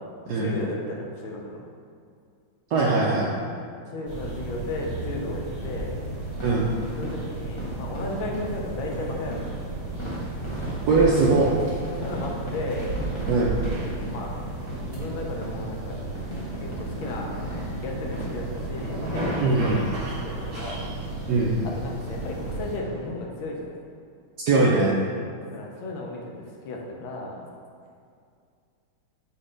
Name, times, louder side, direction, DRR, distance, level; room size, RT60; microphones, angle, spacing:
voice 1, 0.3-1.6 3.9-5.9 7.0-9.9 12.0-13.0 14.0-14.3 14.9-16.0 16.6-17.3 17.8-19.8 20.2-20.9 21.6-23.6 25.5-26.2 26.6-27.4, left 2 dB, 75° left, -1 dB, 1.5 m, -34 dB
voice 2, 2.7-3.3 6.4-6.7 10.9-11.5 13.3-13.6 19.4-19.8 21.3-21.6 24.5-24.9, right 3 dB, 70° right, -4 dB, 0.9 m, -21 dB
sound 1, 4.0-22.8, right 2 dB, 35° right, 1.7 m, -33 dB
sound 2, 6.4-20.2 20.4-20.6 21.0-21.1 21.5-21.7 22.0-23.0 23.4-23.5 23.6-23.7, equal, 30° left, 0.5 m, -38 dB
4.6 x 4.3 x 5.1 m, 2.3 s
omnidirectional pair, 2.3 m